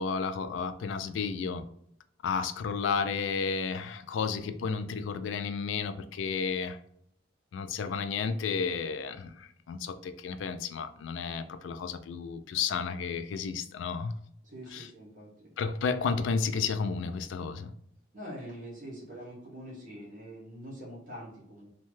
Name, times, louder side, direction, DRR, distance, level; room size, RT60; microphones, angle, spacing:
voice 1, 0.0-1.6 2.2-6.8 7.5-14.2 14.7-14.9 15.6-17.7, left 5 dB, 70° left, 0.3 m, -32 dB
voice 2, 14.4-15.5 18.1-21.7, equal, 40° right, 0.9 m, -44 dB
2.7 x 2.2 x 3.1 m
head